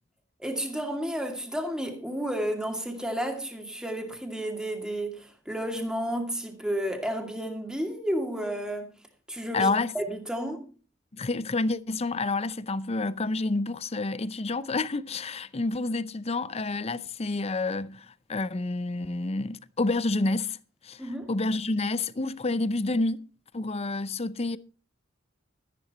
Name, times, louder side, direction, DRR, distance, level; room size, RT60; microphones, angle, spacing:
voice 1, 0.4-9.0 9.3-10.6 21.0-21.3, equal, 5° right, 2.3 m, -32 dB
voice 2, 9.5-9.9 11.1-20.6 20.8-23.2 23.5-24.6, left 3 dB, 30° left, 0.6 m, -29 dB
13.5 x 10.5 x 4.2 m
head